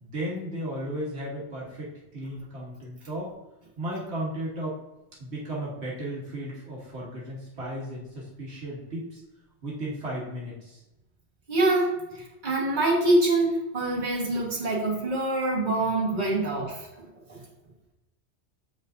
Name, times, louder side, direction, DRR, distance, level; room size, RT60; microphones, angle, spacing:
voice 1, 0.0-3.3 3.8-4.8 5.2-9.2 9.6-10.8, right 1 dB, 70° right, -5 dB, 1.6 m, -35 dB
voice 2, 11.5-16.9 17.3-17.4, right 2 dB, 40° right, -5 dB, 1.6 m, -25 dB
7.6 x 5.1 x 2.6 m, 0.97 s
omnidirectional pair, 1.1 m